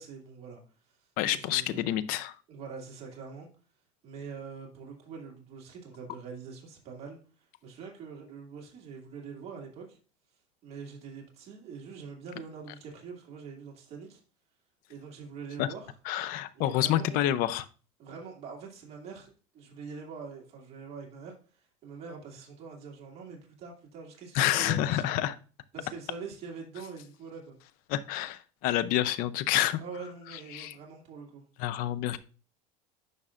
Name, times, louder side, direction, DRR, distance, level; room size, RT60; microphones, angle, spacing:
voice 1, 0.0-1.9 2.5-3.5 4.0-10.0 10.6-14.2 14.9-15.9 16.5-17.2 18.0-25.0 25.7-27.6 29.8-31.4, right 5 dB, 35° right, 2.2 m, -44 dB
voice 2, 1.2-2.4 15.6-15.7 16.1-17.6 24.3-25.4 27.9-29.8 30.5-30.7 31.6-32.2, left 13 dB, 55° left, 0.6 m, -28 dB
9.9 x 5.5 x 2.4 m
supercardioid pair, 120°, 17 cm